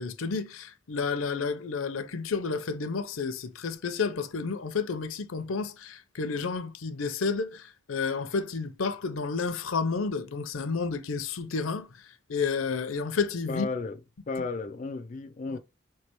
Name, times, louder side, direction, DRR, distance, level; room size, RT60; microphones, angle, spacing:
voice 1, 0.0-13.7, left 4 dB, 85° left, 0.6 m, -31 dB
voice 2, 13.5-14.0 14.3-15.6, left 4 dB, 40° left, 0.4 m, -33 dB
4.7 x 3.3 x 2.9 m
head